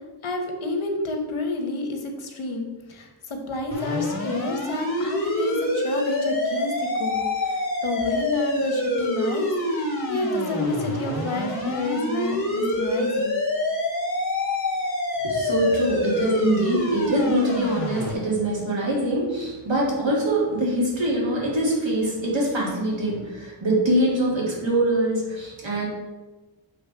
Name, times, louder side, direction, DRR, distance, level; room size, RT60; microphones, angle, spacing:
voice 1, 0.2-7.2 7.8-13.3, left 2 dB, 90° left, 4 dB, 1.1 m, -29 dB
sound 1, 3.7-18.1, left 1 dB, 25° left, 2.0 m, -26 dB
voice 2, 15.2-25.9, right 1 dB, 70° right, -3 dB, 2.1 m, -23 dB
6.7 x 3.5 x 5.3 m, 1.2 s
wide cardioid pair, 110°, 47 cm